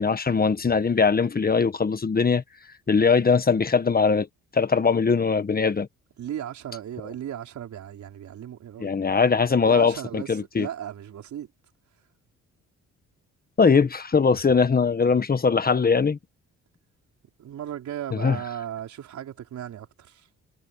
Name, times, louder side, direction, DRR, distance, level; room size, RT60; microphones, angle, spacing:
voice 1, 0.0-2.4 2.9-4.3 4.5-5.9 8.8-10.7 13.6-16.2 18.2-18.4, left 5 dB, 30° left, 1.5 m, -21 dB
voice 2, 6.2-8.9 9.7-11.5 17.4-20.3, right 10 dB, 70° right, 5.1 m, -36 dB
cardioid pair, 90°, 30 cm